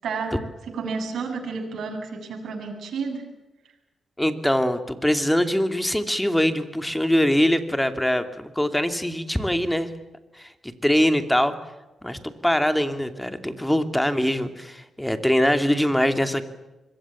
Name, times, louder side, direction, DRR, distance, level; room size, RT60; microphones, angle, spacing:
voice 1, 0.0-0.4 0.6-3.2, right 4 dB, 75° right, 3 dB, 7.9 m, -31 dB
voice 2, 4.2-9.9 10.4-11.5 12.0-16.4, equal, 5° left, 9 dB, 2.6 m, -23 dB
25.5 x 22.5 x 7.4 m, 1.1 s
cardioid pair, 100°, 0 cm